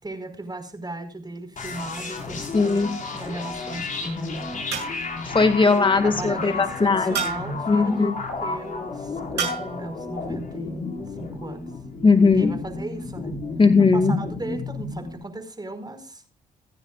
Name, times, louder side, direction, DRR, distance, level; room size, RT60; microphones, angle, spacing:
voice 1, 0.0-4.5 6.0-11.6 12.3-13.3 13.9-16.4, right 2 dB, 25° right, 7 dB, 4.9 m, -36 dB
sound 1, 1.6-15.2, left 3 dB, 50° left, 5.0 m, -32 dB
voice 2, 2.5-2.9 5.2-7.1 7.7-8.1 12.0-12.5 13.6-14.1, left 4 dB, 30° left, 8 dB, 1.9 m, -18 dB
sound 2, 2.5-3.1 4.7-5.3 7.1-7.7 9.4-9.8, right 7 dB, 75° right, 7.1 m, -31 dB
26.0 x 9.8 x 2.4 m, 0.33 s
hypercardioid pair, 50°, 18 cm